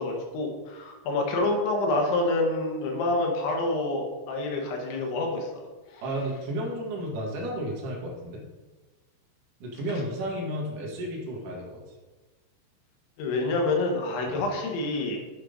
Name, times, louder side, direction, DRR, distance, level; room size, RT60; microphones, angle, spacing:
voice 1, 0.0-5.5 5.9-6.0 13.2-15.2, left 2 dB, 70° left, 1 dB, 3.8 m, -27 dB
voice 2, 6.0-8.4 9.6-11.8 14.3-14.4, right 1 dB, 55° right, -3 dB, 2.8 m, -32 dB
8.0 x 7.6 x 5.2 m, 1.2 s
omnidirectional pair, 5.6 m